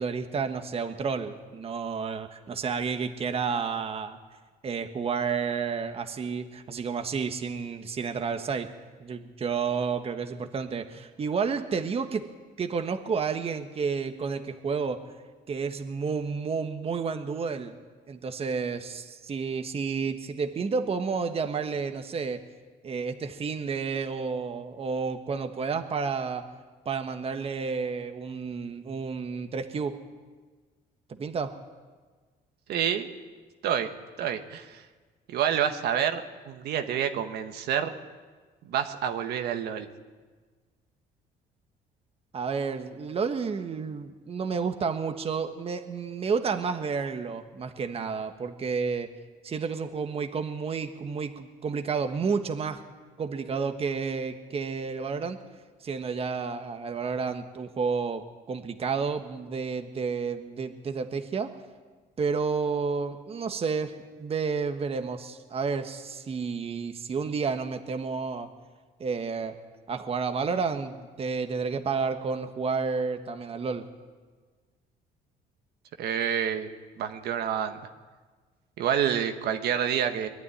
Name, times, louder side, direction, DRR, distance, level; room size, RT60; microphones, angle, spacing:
voice 1, 0.0-4.2 4.6-8.7 9.0-12.3 12.6-15.0 15.5-17.7 18.1-22.4 22.8-26.5 26.8-29.9 31.1-31.5 42.3-49.1 49.4-52.8 53.2-55.4 55.8-61.5 62.2-63.9 64.2-68.5 69.0-69.5 69.9-73.8, right 5 dB, 35° right, 7 dB, 1.4 m, -31 dB
voice 2, 32.7-33.1 33.6-33.9 34.2-34.8 35.3-37.9 38.7-39.9 76.0-76.7 77.0-77.8 78.8-80.3, right 9 dB, 75° right, 6 dB, 1.5 m, -28 dB
22.5 x 12.0 x 9.9 m, 1.4 s
cardioid pair, 110°, 17 cm